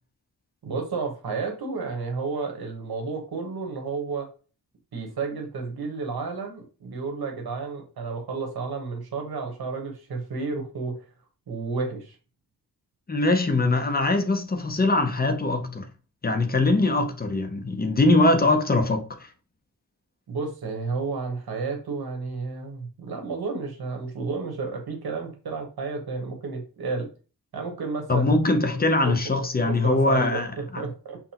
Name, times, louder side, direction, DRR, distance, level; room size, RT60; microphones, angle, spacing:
voice 1, 0.6-4.3 4.9-11.0 11.5-12.2 20.3-27.1 27.5-28.3 29.0-29.1 29.7-31.2, right 4 dB, 80° right, 1.1 m, -31 dB
voice 2, 13.1-15.9 16.2-19.3 28.1-30.5, left 2 dB, 25° left, 0.6 m, -22 dB
5.8 x 2.1 x 2.9 m
wide cardioid pair, 110°, 37 cm